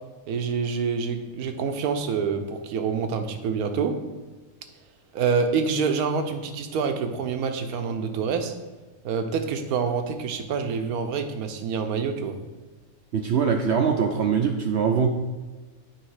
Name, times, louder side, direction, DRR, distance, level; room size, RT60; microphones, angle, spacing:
voice 1, 0.3-4.0 5.1-8.5 9.0-12.4, right 5 dB, 85° right, 7 dB, 1.2 m, -27 dB
voice 2, 13.1-15.1, right 6 dB, 70° right, 4 dB, 0.6 m, -22 dB
9.2 x 3.2 x 4.7 m, 1.2 s
omnidirectional pair, 1.5 m